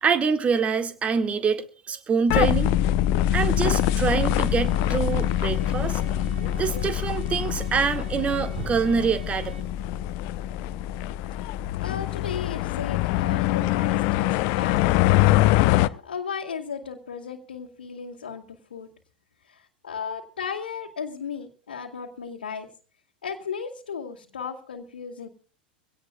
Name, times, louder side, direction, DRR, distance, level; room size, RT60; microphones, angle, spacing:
voice 1, 0.0-2.7 3.3-6.0 6.6-9.6, right 6 dB, 25° right, 9 dB, 2.0 m, -25 dB
sound 1, 2.3-15.9, left 13 dB, 50° left, 0.7 m, -24 dB
sound 2, 3.6-9.6, right 4 dB, 85° right, 3.7 m, -46 dB
voice 2, 11.8-14.9 15.4-18.9 19.5-22.7 23.2-25.3, left 6 dB, 75° left, -1 dB, 2.2 m, -35 dB
24.5 x 17.5 x 2.3 m, 0.39 s
figure-of-eight pair, 90°, 5 cm